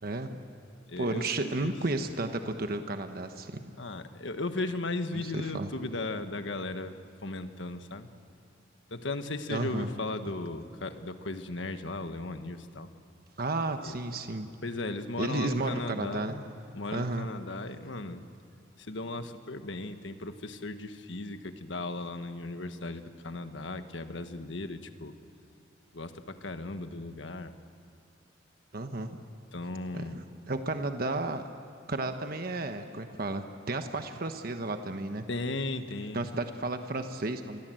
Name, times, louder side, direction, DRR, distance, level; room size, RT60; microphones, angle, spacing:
voice 1, 0.0-0.4 1.0-3.7 5.1-5.7 9.5-9.9 13.4-14.5 15.2-16.3 16.9-17.3 28.7-29.2 29.9-31.4 31.9-35.3 36.1-37.6, right 2 dB, 50° right, 7 dB, 1.2 m, -33 dB
voice 2, 0.9-1.7 3.8-6.9 7.2-8.1 8.9-12.9 13.9-14.0 14.6-16.4 16.7-18.2 18.8-25.2 25.9-27.5 29.5-30.2 35.3-36.3, left 2 dB, 75° left, 8 dB, 1.4 m, -36 dB
27.5 x 22.5 x 7.8 m, 2.7 s
head